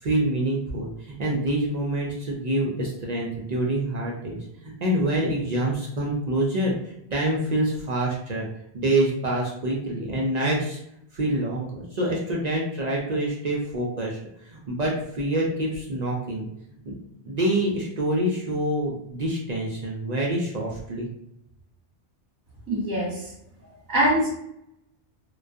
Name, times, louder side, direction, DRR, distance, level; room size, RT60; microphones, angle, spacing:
voice 1, 0.0-8.5 8.7-10.8 11.1-14.2 14.5-16.5 16.8-16.9 17.2-21.1, right 1 dB, 55° right, -2 dB, 0.4 m, -26 dB
voice 2, 22.7-23.3 23.9-24.3, right 1 dB, 20° right, -7 dB, 0.9 m, -23 dB
2.2 x 2.2 x 2.5 m, 0.76 s
omnidirectional pair, 1.1 m